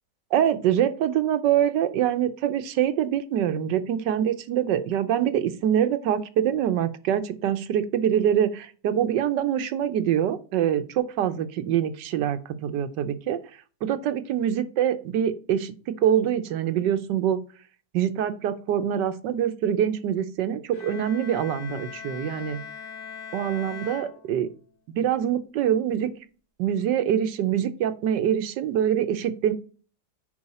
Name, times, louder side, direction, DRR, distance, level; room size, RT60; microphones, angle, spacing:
voice 1, 0.3-13.4 13.8-15.7 16.0-17.4 17.9-22.6 23.3-24.5 25.0-26.1 26.6-29.5, right 10 dB, 85° right, 11 dB, 1.4 m, -24 dB
Bowed string instrument, 20.7-24.7, left 7 dB, 80° left, 3.6 m, -41 dB
9.6 x 4.7 x 4.2 m, 0.39 s
omnidirectional pair, 1.8 m